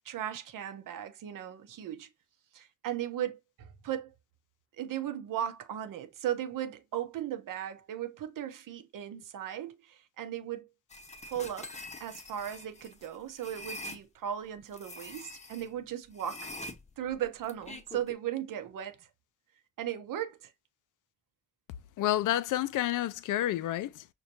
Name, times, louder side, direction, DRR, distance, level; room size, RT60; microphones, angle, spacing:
voice 1, 0.0-2.1 2.5-4.1 4.8-10.7 11.3-11.7 12.0-16.5 17.0-19.1 19.8-20.5, right 11 dB, 60° right, 0.8 m, -37 dB
sound 1, 10.9-14.0 14.7-15.7 16.2-18.1, left 1 dB, 20° left, 0.8 m, -45 dB
voice 2, 22.0-24.1, left 13 dB, 60° left, 0.4 m, -29 dB
5.3 x 2.2 x 2.8 m
hypercardioid pair, 50°, 36 cm